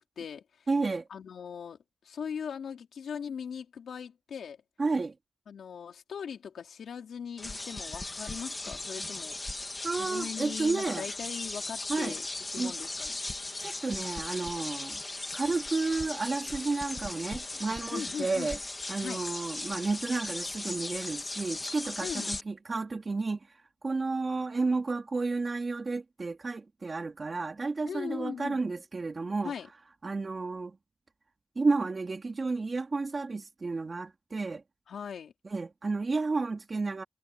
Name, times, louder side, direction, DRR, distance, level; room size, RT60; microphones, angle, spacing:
voice 1, 0.0-0.7 1.1-4.6 5.5-9.4 10.0-12.3 12.5-13.2 17.9-18.6 19.0-19.2 22.0-22.3 27.8-28.6 29.4-29.7 34.9-35.3, left 7 dB, 90° left, 3.7 m, -39 dB
voice 2, 0.7-1.1 4.8-5.1 9.8-11.1 11.9-12.2 12.6-12.7 13.6-15.0 15.3-18.6 18.9-23.4 23.8-29.5 30.0-30.8 31.6-34.6 35.5-37.0, right 3 dB, 30° right, 3.6 m, -31 dB
sound 1, 7.4-22.4, left 2 dB, 20° left, 1.8 m, -38 dB
wide cardioid pair, 155°, 0 cm